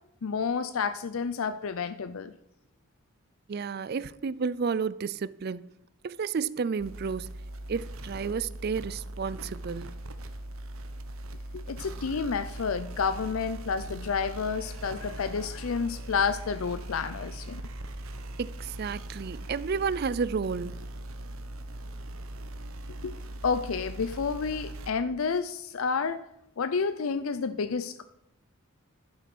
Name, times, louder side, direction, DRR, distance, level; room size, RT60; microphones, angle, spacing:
voice 1, 0.2-2.3 11.5-17.6 23.0-23.2 23.4-26.2 26.6-28.0, left 5 dB, 80° left, 0.5 m, -30 dB
voice 2, 3.5-5.6 6.0-7.3 7.7-9.9 18.4-20.8, right 5 dB, 50° right, 0.4 m, -31 dB
sound 1, 6.8-24.9, right 1 dB, 80° right, 1.0 m, -40 dB
11.5 x 8.0 x 6.0 m
head